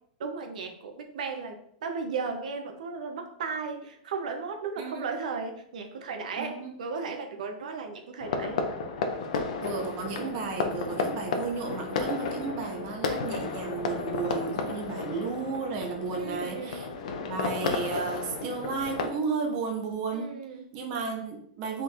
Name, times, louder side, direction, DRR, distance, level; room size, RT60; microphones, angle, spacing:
voice 1, 0.2-8.6 16.1-16.8 20.1-20.7, right 5 dB, 85° right, 4 dB, 0.6 m, -35 dB
voice 2, 4.8-5.1 6.4-6.7 9.3-16.9 17.2-20.3 20.7-21.8, right 5 dB, 30° right, 1 dB, 0.7 m, -33 dB
sound 1, 8.2-19.1, left 4 dB, 65° left, 0.6 m, -33 dB
3.7 x 2.5 x 4.3 m, 0.69 s
supercardioid pair, 180°, 4 cm